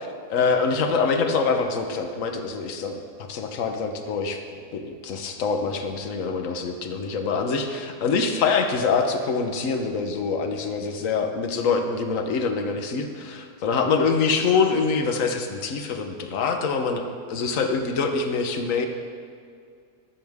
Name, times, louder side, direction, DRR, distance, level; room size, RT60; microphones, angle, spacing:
voice 1, 0.3-3.0 3.3-4.4 4.7-17.0 17.3-18.9, left 5 dB, 60° left, 5 dB, 1.3 m, -25 dB
20.0 x 7.9 x 3.6 m, 2.2 s
omnidirectional pair, 1.7 m